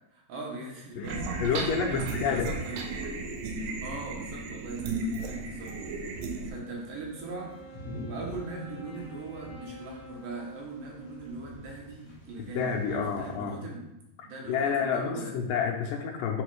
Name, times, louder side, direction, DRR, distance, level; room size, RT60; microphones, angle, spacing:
voice 1, 0.0-2.9 3.5-5.8 6.4-13.8 14.2-15.3, right 2 dB, 70° right, -1 dB, 2.7 m, -40 dB
voice 2, 1.0-2.6 12.4-13.6 14.5-16.4, left 6 dB, 80° left, 2 dB, 2.1 m, -29 dB
sound 1, 1.0-6.5, right 3 dB, 90° right, 2.6 m, -34 dB
sound 2, 5.2-13.3, left 1 dB, 50° left, 1.0 m, -48 dB
Wind instrument woodwind instrument, 7.1-11.7, right 2 dB, 50° right, 1.2 m, -49 dB
6.2 x 4.3 x 4.8 m, 0.90 s
omnidirectional pair, 4.2 m